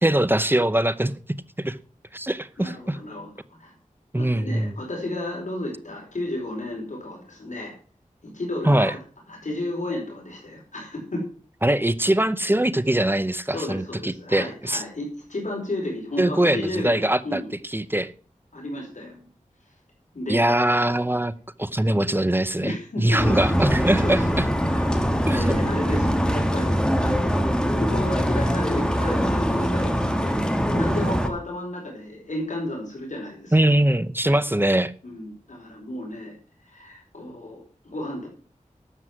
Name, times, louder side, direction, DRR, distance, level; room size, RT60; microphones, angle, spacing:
voice 1, 0.0-1.1 1.6-1.8 2.1-3.0 4.1-4.7 8.6-8.9 11.6-14.8 16.2-18.1 20.3-21.3 21.6-24.5 25.3-25.5 33.5-34.9, right 1 dB, 15° right, 0.7 m, -22 dB
voice 2, 2.6-3.3 3.6-3.7 4.1-7.7 8.2-9.0 9.3-11.3 13.5-17.5 18.5-19.3 20.1-20.9 22.6-23.6 24.0-24.9 25.3-33.7 35.0-36.4 36.6-38.3, left 1 dB, 65° left, 4.7 m, -33 dB
sound 1, 23.2-31.3, equal, 5° left, 1.8 m, -23 dB
12.5 x 7.5 x 6.1 m
wide cardioid pair, 75°, 13 cm